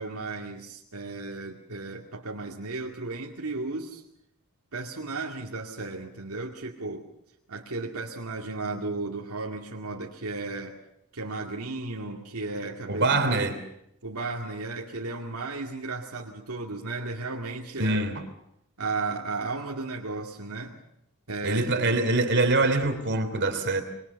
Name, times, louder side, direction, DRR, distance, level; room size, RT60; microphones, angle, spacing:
voice 1, 0.0-4.0 4.7-7.1 7.5-10.8 11.1-13.5 14.0-18.1 18.8-20.8 21.3-22.0, right 3 dB, 75° right, 2.4 m, -34 dB
voice 2, 12.9-13.6 17.8-18.2 21.4-23.8, right 2 dB, 55° right, 3.2 m, -24 dB
25.0 x 23.0 x 7.0 m
head